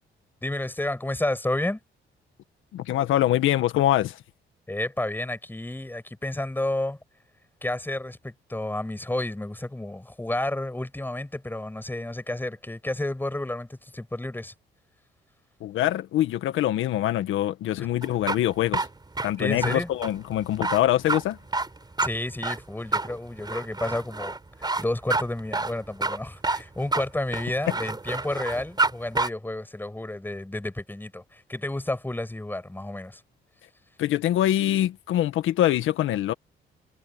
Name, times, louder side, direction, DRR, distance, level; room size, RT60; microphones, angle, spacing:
voice 1, 0.4-1.8 4.7-7.0 7.6-14.5 17.8-17.9 19.4-19.9 22.0-33.2, left 1 dB, 10° left, 7.4 m, -31 dB
voice 2, 2.7-4.2 15.6-18.9 19.2-21.4 34.0-36.3, left 13 dB, 85° left, 1.6 m, -24 dB
sound 1, 18.0-28.9 29.2-29.3, right 3 dB, 20° right, 4.7 m, -28 dB
cardioid pair, 90°, 20 cm